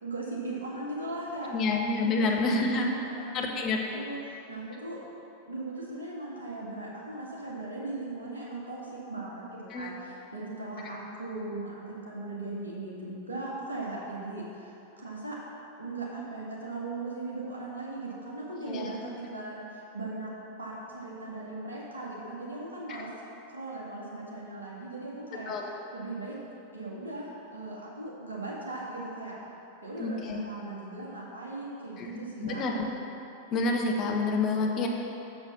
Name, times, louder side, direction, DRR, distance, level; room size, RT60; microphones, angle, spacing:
voice 1, 0.0-1.5 2.0-3.6 3.9-5.0 5.5-15.4 15.8-20.3 20.6-23.1 23.5-26.3 26.7-29.3 29.8-32.6, right 2 dB, 75° right, -5 dB, 1.9 m, -38 dB
voice 2, 1.5-2.9 3.3-4.0 9.7-9.9 18.7-18.9 25.5-25.6 30.0-30.5 32.0-32.1 32.4-32.8 33.5-34.9, left 3 dB, 35° left, 1 dB, 1.0 m, -28 dB
7.0 x 6.6 x 5.8 m, 2.9 s
figure-of-eight pair, 90°, 0 cm